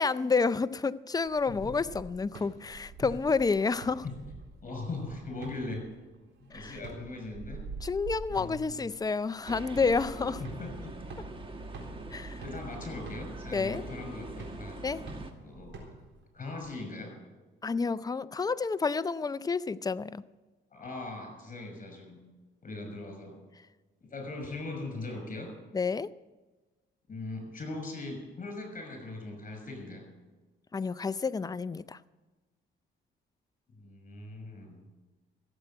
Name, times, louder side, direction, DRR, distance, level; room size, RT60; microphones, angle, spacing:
voice 1, 0.0-4.0 6.5-6.8 7.8-10.4 12.1-12.4 13.5-13.8 14.8-15.0 17.6-20.2 25.7-26.1 30.7-32.0, left 4 dB, 20° left, 16 dB, 0.5 m, -29 dB
sound 1, 1.2-16.2, right 4 dB, 75° right, 4.0 m, -47 dB
voice 2, 4.6-5.9 6.4-7.6 8.3-8.8 10.4-11.0 12.4-14.8 15.4-15.9 16.3-17.1 20.7-22.2 22.6-23.4 24.0-25.5 27.1-30.0 33.7-34.8, left 2 dB, 40° left, 4 dB, 5.8 m, -40 dB
sound 2, 9.4-15.3, right 2 dB, 25° right, 1.5 m, -43 dB
15.5 x 8.0 x 9.1 m, 1.2 s
cardioid pair, 90°, 20 cm